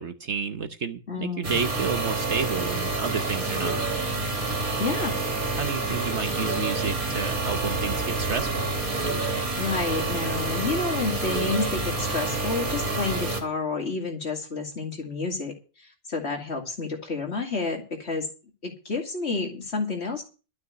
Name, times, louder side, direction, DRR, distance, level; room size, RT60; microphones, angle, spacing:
voice 1, 0.0-3.8 5.6-8.7, right 6 dB, 55° right, 9 dB, 1.2 m, -31 dB
voice 2, 1.1-1.6 4.8-5.1 9.3-18.3 18.6-20.2, left 4 dB, 50° left, 2 dB, 2.6 m, -30 dB
sound 1, 1.4-13.4, right 2 dB, 90° right, 3.2 m, -28 dB
13.0 x 6.1 x 9.2 m, 0.35 s
omnidirectional pair, 1.5 m